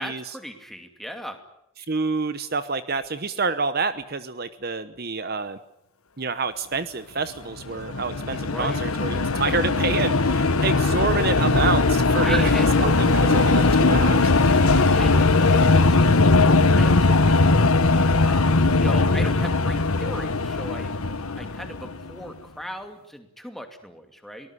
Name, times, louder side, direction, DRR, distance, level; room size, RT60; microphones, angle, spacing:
voice 1, 0.0-1.4 8.4-8.8 12.1-13.6 14.9-17.9 18.2-20.9 21.2-24.5, equal, ahead, 5 dB, 2.4 m, -38 dB
voice 2, 1.9-5.6 6.2-14.3, right 4 dB, 45° right, 12 dB, 0.9 m, -28 dB
sound 1, 7.6-22.1, left 3 dB, 80° left, 1.4 m, -19 dB
Train, 11.0-17.8 18.3-18.4 18.6-18.7, left 3 dB, 50° left, 4.0 m, -35 dB
23.5 x 19.0 x 9.9 m, 0.81 s
head